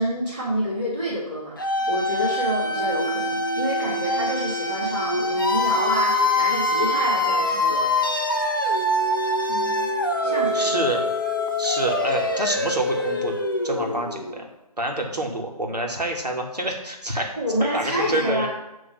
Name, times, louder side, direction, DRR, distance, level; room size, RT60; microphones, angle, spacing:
voice 1, 0.0-7.9 10.2-10.7 17.4-18.5, equal, 15° right, -11 dB, 1.7 m, -28 dB
sound 1, 1.6-14.4, left 1 dB, 35° left, 0.5 m, -24 dB
voice 2, 9.5-9.9 10.5-11.1 11.6-13.3 13.6-14.4 14.8-17.3 17.6-18.5, right 1 dB, 80° right, 1 dB, 1.6 m, -27 dB
8.0 x 3.1 x 5.5 m, 0.94 s
figure-of-eight pair, 160°, 20 cm